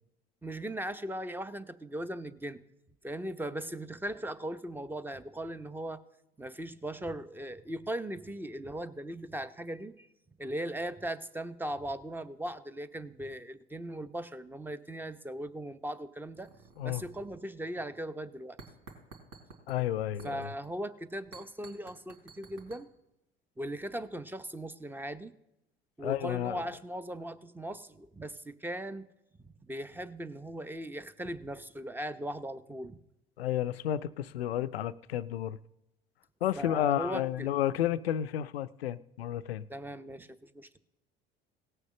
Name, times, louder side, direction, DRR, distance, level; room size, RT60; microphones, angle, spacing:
voice 1, 0.4-2.6 3.0-6.0 6.4-10.1 10.4-16.5 16.8-18.6 20.2-22.9 23.6-25.3 26.0-29.1 29.4-33.0 36.6-37.5 39.7-40.8, right 1 dB, 5° right, 0.8 m, -38 dB
sound 1, 16.4-17.5 17.8-18.0 18.6-19.8 20.2-20.7 21.3-22.8, right 4 dB, 50° right, 3.6 m, -52 dB
voice 2, 19.7-20.5 26.0-26.6 33.4-35.6 36.4-39.6, left 11 dB, 85° left, 0.5 m, -31 dB
17.5 x 6.6 x 6.4 m
hypercardioid pair, 70°, 30 cm